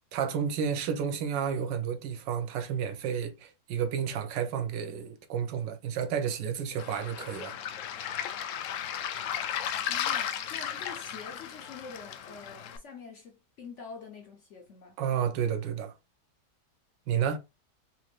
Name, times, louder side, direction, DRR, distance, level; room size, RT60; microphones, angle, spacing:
voice 1, 0.1-7.6 15.0-15.9 17.1-17.4, right 8 dB, 85° right, 1.4 m, -31 dB
Waves surf, 6.8-12.8, left 9 dB, 85° left, 0.6 m, -35 dB
voice 2, 9.9-15.0, left 5 dB, 55° left, 0.9 m, -46 dB
4.2 x 3.0 x 2.4 m
omnidirectional pair, 1.9 m